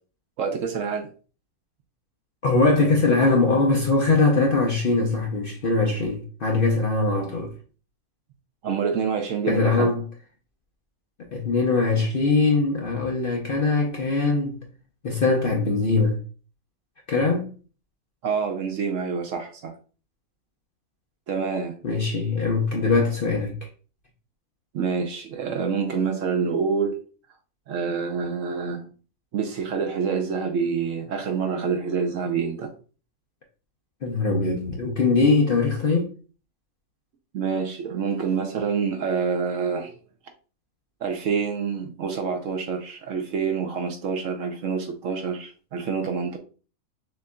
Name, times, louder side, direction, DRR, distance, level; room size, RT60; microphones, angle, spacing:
voice 1, 0.4-1.1 8.6-9.9 18.2-19.7 21.3-21.8 24.7-27.0 27.7-28.9 29.3-32.7 37.3-39.9 41.0-46.4, right 6 dB, 65° right, 0.9 m, -27 dB
voice 2, 2.4-7.5 9.5-10.1 11.3-14.6 15.0-16.2 17.1-17.5 21.8-23.5 34.0-36.1, left 3 dB, 50° left, 0.7 m, -21 dB
6.4 x 2.6 x 2.2 m
omnidirectional pair, 1.6 m